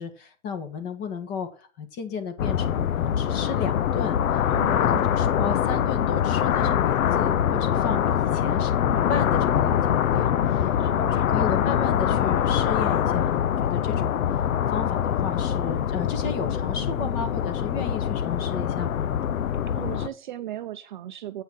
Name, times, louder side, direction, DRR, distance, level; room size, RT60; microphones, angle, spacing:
voice 1, 0.0-4.4 4.8-14.2 14.7-19.2, left 5 dB, 25° left, 9 dB, 1.5 m, -34 dB
sound 1, 2.4-20.1, left 9 dB, 85° left, 0.8 m, -24 dB
voice 2, 4.5-5.1 6.6-6.7 10.8-11.5 16.8-17.1 19.7-21.4, right 12 dB, 35° right, 9 dB, 0.6 m, -38 dB
8.6 x 5.5 x 6.2 m, 0.36 s
hypercardioid pair, 160°, 40 cm